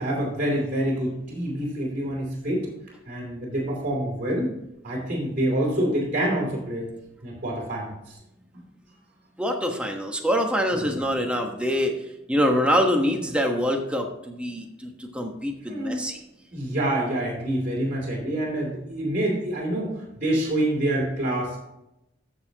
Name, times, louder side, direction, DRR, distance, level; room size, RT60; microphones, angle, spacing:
voice 1, 0.0-2.7 3.0-4.5 4.8-6.9 7.2-8.2 10.7-10.8 15.6-16.1 16.5-21.6, right 1 dB, 40° right, -3 dB, 3.1 m, -27 dB
voice 2, 9.4-11.9 12.3-14.9 15.1-16.2, equal, 5° right, 2 dB, 1.2 m, -24 dB
13.5 x 6.8 x 3.0 m, 0.88 s
head